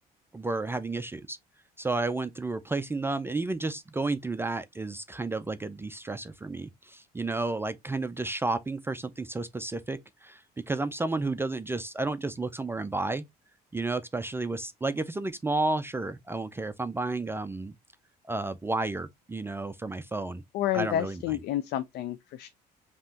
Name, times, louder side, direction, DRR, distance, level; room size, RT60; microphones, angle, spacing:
voice 1, 0.3-1.4 1.8-13.2 13.7-17.7 18.3-20.4 20.7-21.2, right 3 dB, 15° right, 0.4 m, -32 dB
voice 2, 20.5-22.5, left 12 dB, 75° left, 0.5 m, -30 dB
5.4 x 2.9 x 2.7 m
cardioid pair, 110°, 17 cm